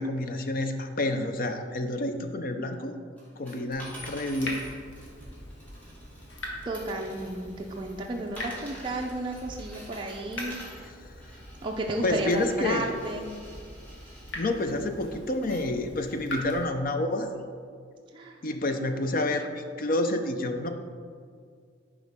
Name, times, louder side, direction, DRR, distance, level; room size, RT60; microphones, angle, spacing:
voice 1, 0.0-3.0 3.4-4.6 10.8-10.9 12.0-12.9 14.4-17.3 18.4-20.7, left 1 dB, 50° left, 7 dB, 0.6 m, -29 dB
sound 1, 3.2-6.4 6.7-14.4 15.0-15.6 16.2-16.3, right 1 dB, 10° left, 2.0 m, -48 dB
Water tap faucet / Drip, 3.7-16.6, left 1 dB, 85° left, 1.5 m, -42 dB
voice 2, 6.6-10.6 11.6-13.3 18.1-18.4 18.7-18.9, right 1 dB, 25° right, -1 dB, 0.5 m, -33 dB
10.5 x 4.9 x 3.6 m, 2.2 s
head